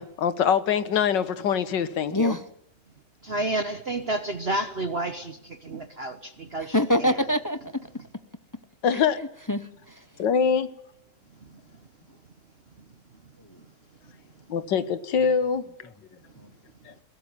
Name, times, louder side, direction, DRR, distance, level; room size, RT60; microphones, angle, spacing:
voice 1, 0.0-2.4 8.8-9.2 10.2-10.7 14.5-15.9, left 7 dB, 85° left, 14 dB, 1.9 m, -24 dB
voice 2, 2.1-2.4 6.7-7.8 8.9-10.0 13.5-13.6, left 1 dB, 20° left, 11 dB, 0.5 m, -26 dB
voice 3, 3.2-5.4 5.6-7.2, right 2 dB, 40° right, 9 dB, 1.2 m, -30 dB
21.5 x 16.5 x 9.5 m, 0.72 s
omnidirectional pair, 1.9 m